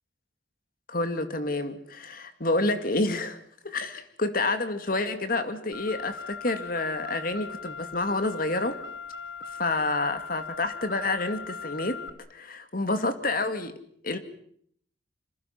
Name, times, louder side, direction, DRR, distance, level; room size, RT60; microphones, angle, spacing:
voice 1, 0.9-3.4 3.6-8.8 9.6-12.0 12.3-13.7 14.0-14.2, left 2 dB, 50° left, 9 dB, 2.3 m, -28 dB
Car, 5.7-12.1, left 5 dB, 65° left, 1.9 m, -39 dB
28.0 x 26.0 x 5.9 m, 0.65 s
head